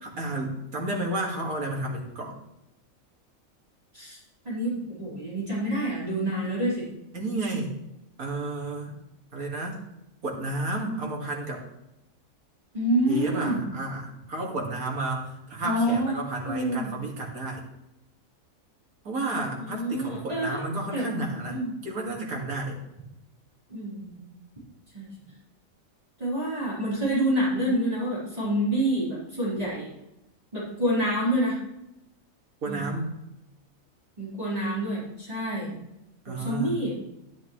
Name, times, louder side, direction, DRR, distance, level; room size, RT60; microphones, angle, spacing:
voice 1, 0.0-2.3 7.1-7.7 8.2-9.0 9.3-9.8 10.2-11.6 13.1-17.6 19.0-22.8 32.6-33.1 36.3-36.8, right 2 dB, 85° right, -1 dB, 2.4 m, -32 dB
voice 2, 4.4-6.9 12.7-13.6 15.6-16.2 16.4-16.9 19.6-20.6 20.9-21.1 21.5-21.7 23.7-24.2 24.9-25.1 26.2-29.9 30.5-31.6 32.7-32.9 34.2-35.8 36.3-37.0, right 1 dB, 25° right, -9 dB, 4.0 m, -27 dB
11.0 x 10.0 x 3.1 m, 0.90 s
omnidirectional pair, 1.5 m